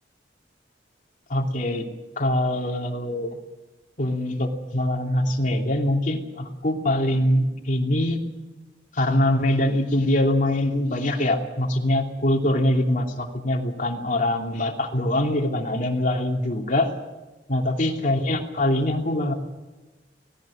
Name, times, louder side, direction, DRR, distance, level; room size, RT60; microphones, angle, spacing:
voice 1, 1.3-1.9 2.2-3.4 4.0-8.2 8.9-16.9 17.5-19.3, left 1 dB, 45° left, 1 dB, 2.9 m, -23 dB
18.5 x 17.5 x 8.7 m, 1.2 s
head